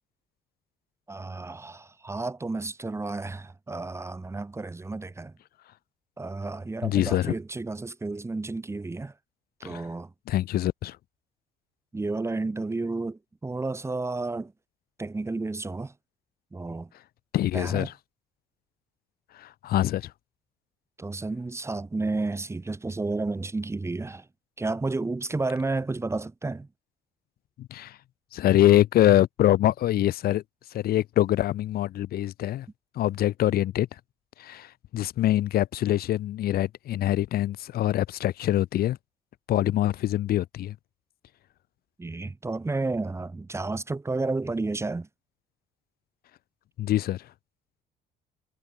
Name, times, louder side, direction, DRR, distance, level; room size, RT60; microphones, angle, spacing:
voice 1, 1.1-5.3 6.2-9.1 9.6-10.1 11.9-14.5 15.0-15.9 16.5-16.9 17.5-17.9 21.0-24.2 24.6-26.7 42.0-45.1, right 3 dB, 15° right, 2.2 m, -31 dB
voice 2, 6.8-7.4 9.6-9.9 10.3-11.0 17.3-17.9 19.3-20.1 27.6-28.0 28.3-30.4 30.7-32.7 32.9-34.0 34.4-39.0 39.5-40.7 46.8-47.3, left 13 dB, 65° left, 1.3 m, -24 dB
cardioid pair, 110°, 17 cm